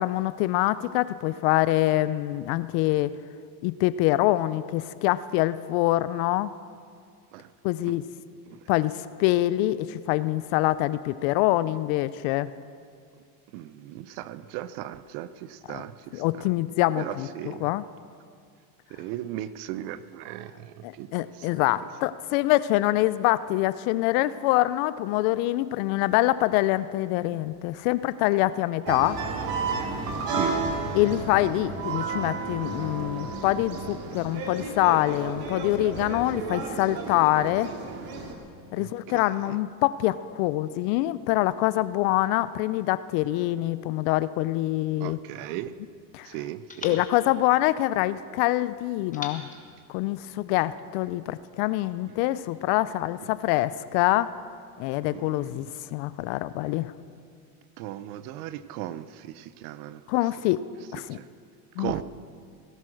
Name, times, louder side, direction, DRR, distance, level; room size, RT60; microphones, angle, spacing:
voice 1, 0.0-3.1 3.6-6.5 7.6-8.0 8.7-12.5 15.7-15.8 16.1-17.8 20.8-29.2 30.9-37.7 38.7-45.2 46.1-46.3 46.8-49.5 49.9-54.3 54.8-56.9 60.1-60.6 60.9-61.2 61.8-61.9, left 16 dB, 60° left, 16 dB, 0.6 m, -25 dB
voice 2, 13.5-16.2 17.0-17.7 18.9-21.6 30.3-30.6 38.8-39.6 45.0-45.7 46.2-47.0 52.1-52.2 55.1-55.8 57.8-60.0 61.1-61.3 61.8-62.0, right 13 dB, 65° right, 15 dB, 0.8 m, -37 dB
sound 1, 28.9-38.3, right 4 dB, 50° right, 2.2 m, -32 dB
sound 2, 44.9-46.1 46.7-48.3 49.1-50.7, left 4 dB, 15° left, 1.5 m, -45 dB
17.5 x 11.0 x 6.4 m, 2.2 s
supercardioid pair, 120°, 47 cm